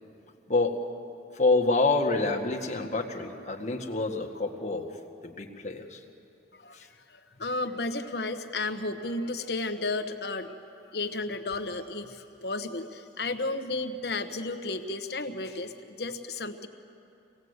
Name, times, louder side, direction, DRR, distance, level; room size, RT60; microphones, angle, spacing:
voice 1, 1.3-4.9 5.2-6.0 6.7-6.9, left 3 dB, 40° left, 3 dB, 1.6 m, -27 dB
voice 2, 7.4-10.6 10.9-12.1 12.4-15.7 16.0-16.7, left 2 dB, 60° left, 7 dB, 1.2 m, -32 dB
25.0 x 18.5 x 8.1 m, 2.7 s
head